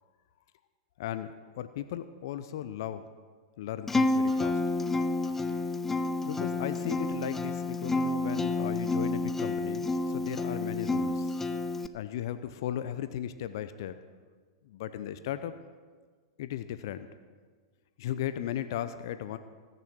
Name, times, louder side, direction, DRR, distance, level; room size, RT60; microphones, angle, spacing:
voice 1, 1.0-3.1 3.6-4.6 6.2-11.4 11.9-14.0 14.6-15.5 16.4-17.1 18.0-19.4, left 11 dB, 60° left, 11 dB, 0.7 m, -36 dB
Acoustic guitar, 3.9-11.9, left 2 dB, 10° left, 0.6 m, -29 dB
20.5 x 6.9 x 6.2 m, 1.5 s
hypercardioid pair, 100°, 2 cm